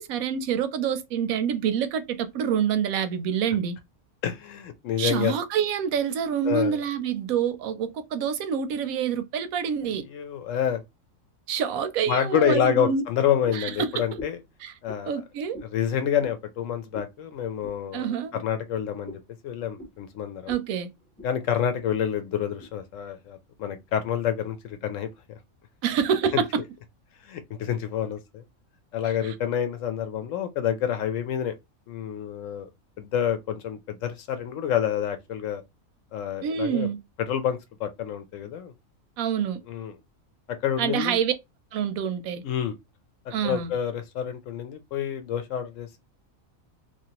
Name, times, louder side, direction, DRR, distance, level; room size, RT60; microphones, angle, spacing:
voice 1, 0.0-3.8 5.0-10.0 11.5-13.0 13.5-14.0 14.6-14.7 15.1-15.6 17.9-18.3 20.5-20.9 25.8-26.6 29.2-29.3 36.4-37.0 39.2-39.6 40.8-41.3 41.7-42.4 43.3-43.7, right 8 dB, 85° right, 1.0 m, -27 dB
voice 2, 4.2-5.3 6.4-6.8 10.1-10.8 12.1-14.4 14.8-15.2 15.6-20.5 21.2-25.1 26.3-26.4 27.2-28.4 28.9-31.5 31.9-32.7 33.0-35.6 36.1-36.9 37.2-38.7 39.7-39.9 40.6-41.2 42.4-42.8 43.4-46.0, left 9 dB, 70° left, 0.9 m, -28 dB
sound 1, 13.4-13.7 14.1-14.5 14.8-15.0 15.5-15.7 16.2-16.4 16.9-17.1 17.6-17.8 18.3-18.5 19.0-19.3 19.8-20.0 20.5-20.6 21.0-21.3 21.8-22.0 22.6-22.7, left 1 dB, 10° left, 0.4 m, -42 dB
3.0 x 2.4 x 2.8 m
omnidirectional pair, 1.4 m